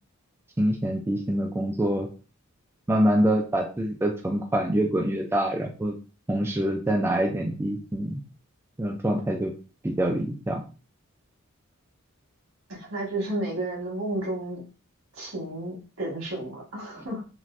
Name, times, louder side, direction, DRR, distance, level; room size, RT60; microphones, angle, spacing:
voice 1, 0.6-2.1 2.9-6.0 6.3-8.2 8.8-9.5 9.8-10.6, right 1 dB, 10° right, 0 dB, 0.3 m, -25 dB
voice 2, 12.7-14.6 15.2-17.2, right 1 dB, 75° right, -2 dB, 1.5 m, -32 dB
3.2 x 2.5 x 2.5 m, 0.34 s
head